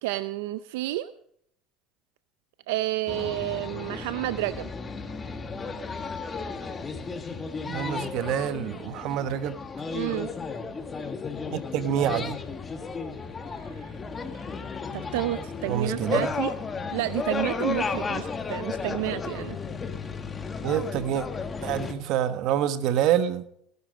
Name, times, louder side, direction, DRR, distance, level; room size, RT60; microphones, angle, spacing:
voice 1, 0.0-1.1 2.7-4.7 9.9-10.3 13.7-13.9 14.3-14.5 14.9-16.5 16.9-19.6, right 16 dB, 85° right, 14 dB, 0.5 m, -30 dB
sound 1, 3.1-21.9, left 4 dB, 25° left, 1.6 m, -34 dB
voice 2, 7.7-9.6 11.5-12.4 15.7-16.3 20.6-21.3 21.6-23.4, right 10 dB, 60° right, 13 dB, 1.2 m, -27 dB
18.0 x 11.5 x 5.2 m, 0.71 s
supercardioid pair, 120°, 0 cm